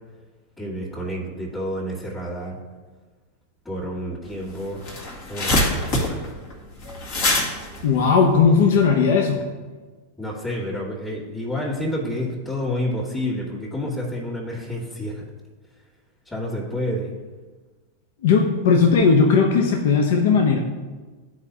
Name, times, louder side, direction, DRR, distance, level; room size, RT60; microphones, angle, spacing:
voice 1, 0.6-2.6 3.6-4.9 5.3-6.4 10.2-15.3 16.3-17.1, left 1 dB, 10° left, -7 dB, 1.9 m, -29 dB
sound 1, 4.3-4.4 4.6-8.9, left 1 dB, 55° left, 1.9 m, -24 dB
voice 2, 7.8-9.5 18.2-20.6, left 5 dB, 70° left, 3 dB, 0.7 m, -17 dB
11.5 x 4.4 x 2.8 m, 1.3 s
hypercardioid pair, 110°, 0 cm